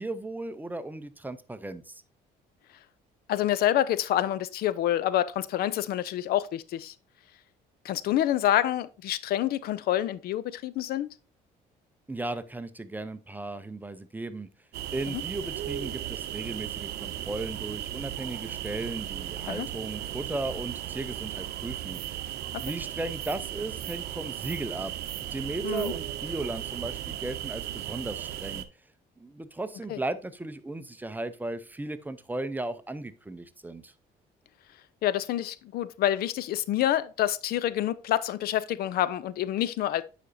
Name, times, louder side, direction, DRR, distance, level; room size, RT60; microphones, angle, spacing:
voice 1, 0.0-1.9 12.1-14.5 14.9-22.2 22.6-24.9 25.3-28.7 29.2-33.9, right 2 dB, 10° right, 0.5 m, -36 dB
voice 2, 3.3-6.9 7.8-11.1 15.1-15.2 19.5-19.7 22.5-22.6 25.6-25.9 29.9-30.0 35.0-40.0, left 12 dB, 65° left, 0.5 m, -27 dB
sound 1, 14.7-28.6, right 11 dB, 75° right, 0.7 m, -36 dB
9.7 x 5.0 x 2.6 m
cardioid pair, 110°, 17 cm